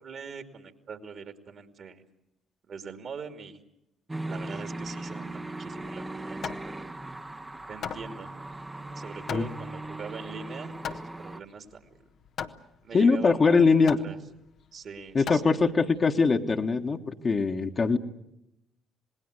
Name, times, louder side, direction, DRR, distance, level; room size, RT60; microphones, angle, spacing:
voice 1, 0.0-2.0 2.6-3.6 4.2-6.7 7.7-8.3 8.9-11.9 12.8-14.2 14.7-15.5, right 5 dB, 50° right, 7 dB, 2.6 m, -42 dB
sound 1, 4.1-11.4, right 2 dB, 15° right, 1.1 m, -38 dB
Hammer, 5.8-16.1, left 8 dB, 60° left, 1.2 m, -41 dB
voice 2, 12.9-14.0 15.1-18.0, left 4 dB, 40° left, 4 dB, 1.6 m, -22 dB
27.0 x 19.5 x 8.1 m, 0.84 s
hypercardioid pair, 50°, 0 cm